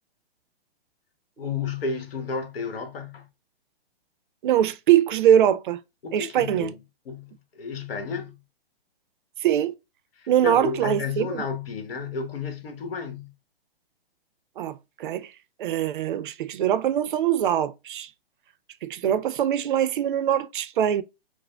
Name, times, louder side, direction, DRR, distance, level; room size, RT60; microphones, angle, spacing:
voice 1, 1.4-3.3 6.0-6.7 7.1-8.4 10.2-13.3, left 5 dB, 70° left, 1.1 m, -32 dB
voice 2, 4.4-5.8 6.1-6.7 9.4-9.7 10.3-11.4 14.6-15.3 15.6-18.1 18.8-21.0, right 10 dB, 55° right, 0.5 m, -23 dB
4.9 x 2.0 x 2.2 m
hypercardioid pair, 150°, 31 cm